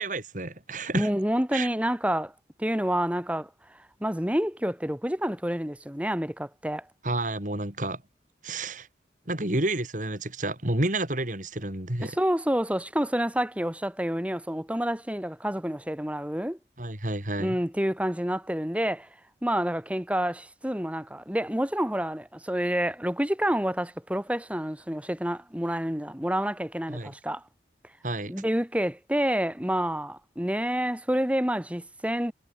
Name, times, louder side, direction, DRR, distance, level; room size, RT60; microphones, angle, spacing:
voice 1, 0.0-1.1 1.5-1.7 7.0-8.0 8.4-8.9 9.3-12.2 16.8-17.6 26.9-27.1 28.0-28.3, right 2 dB, 45° right, 3.6 m, -30 dB
voice 2, 0.9-2.3 2.6-3.5 4.0-6.9 12.0-16.6 17.4-19.1 19.4-27.4 28.3-32.3, equal, 5° right, 1.8 m, -28 dB
head